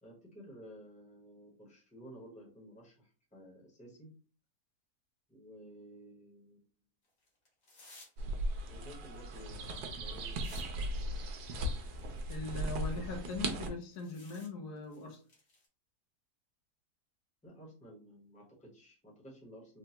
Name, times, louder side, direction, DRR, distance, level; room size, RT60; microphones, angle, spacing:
voice 1, 0.0-4.1 5.3-6.6 8.7-10.6 17.4-19.8, equal, 5° left, -3 dB, 0.8 m, -53 dB
sound 1, 7.0-8.2 8.5-10.7 11.0-11.1 11.7-14.5 14.8-15.7, left 2 dB, 60° left, 1.5 m, -59 dB
sound 2, 8.2-13.7, right 1 dB, 90° right, 1.2 m, -37 dB
voice 2, 12.3-15.2, left 3 dB, 80° left, 3 dB, 1.3 m, -40 dB
3.7 x 2.2 x 2.8 m, 0.39 s
omnidirectional pair, 1.7 m